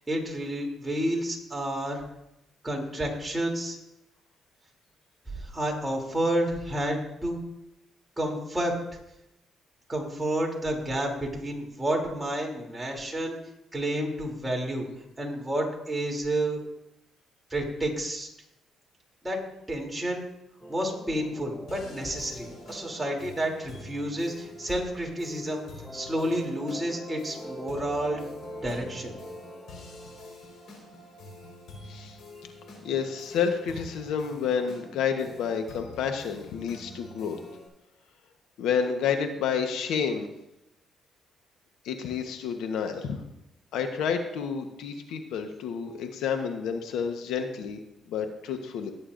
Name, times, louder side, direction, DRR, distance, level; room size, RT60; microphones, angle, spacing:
voice 1, 0.0-2.0 2.6-3.8 5.3-7.4 8.2-8.8 9.9-13.4 13.7-14.9 15.2-16.6 17.5-18.3 19.2-20.2 20.7-28.3 28.6-29.2, right 1 dB, 10° right, -1 dB, 3.0 m, -30 dB
sound 1, 20.6-25.5 25.8-30.4, equal, 5° left, 0.8 m, -44 dB
sound 2, 21.7-37.7, left 2 dB, 70° left, 4.4 m, -47 dB
voice 2, 32.8-37.4 38.6-40.3 41.8-43.2 43.7-47.8 48.1-48.9, left 6 dB, 85° left, 6 dB, 1.0 m, -29 dB
18.0 x 8.8 x 2.6 m, 0.87 s
cardioid pair, 90°, 0 cm